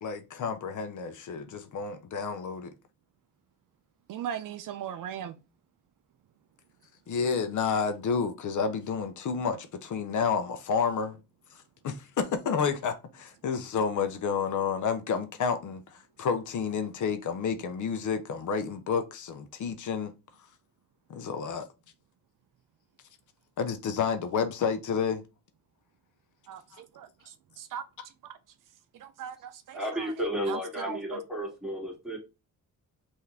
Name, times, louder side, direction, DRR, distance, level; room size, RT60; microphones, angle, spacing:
voice 1, 0.0-2.7 7.1-11.2 11.8-20.1 21.1-21.7 23.6-25.2 26.7-26.8, left 6 dB, 65° left, 0.7 m, -30 dB
voice 2, 4.1-5.4 26.5-27.8 28.9-30.1 30.5-31.2, right 9 dB, 75° right, 0.6 m, -39 dB
voice 3, 29.7-32.2, equal, ahead, 2.0 m, -33 dB
5.7 x 2.7 x 3.3 m
wide cardioid pair, 140°, 33 cm